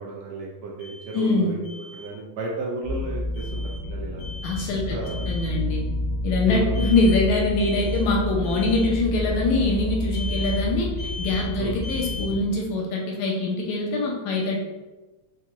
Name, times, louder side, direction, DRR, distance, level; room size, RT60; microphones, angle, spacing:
voice 1, 0.0-1.6 1.9-4.3 4.9-5.2 6.4-6.8 11.6-11.8, right 2 dB, 80° right, -3 dB, 1.6 m, -33 dB
Alarm, 0.8-1.2 1.6-2.1 3.3-3.8 4.2-4.7 5.0-5.5 6.7-7.2 7.6-8.1 8.4-8.9 10.1-10.6 11.0-11.5 11.8-12.3, left 3 dB, 55° right, 1.9 m, -38 dB
voice 2, 1.1-1.6 4.4-5.8 6.2-10.9 11.2-14.6, left 3 dB, 75° left, -2 dB, 2.0 m, -24 dB
sound 1, 2.8-12.4, equal, 55° left, 1.3 m, -29 dB
5.5 x 2.2 x 2.9 m, 1.2 s
omnidirectional pair, 3.4 m